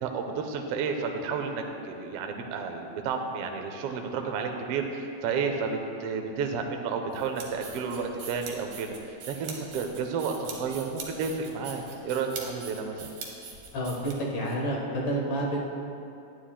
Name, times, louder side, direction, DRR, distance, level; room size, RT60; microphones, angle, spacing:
voice 1, 0.0-13.1, right 5 dB, 80° right, 3 dB, 1.3 m, -31 dB
sound 1, 7.1-14.5, right 5 dB, 65° right, 1.9 m, -42 dB
voice 2, 13.7-15.6, right 1 dB, 60° left, -3 dB, 1.5 m, -29 dB
10.0 x 9.1 x 2.3 m, 2.6 s
omnidirectional pair, 3.4 m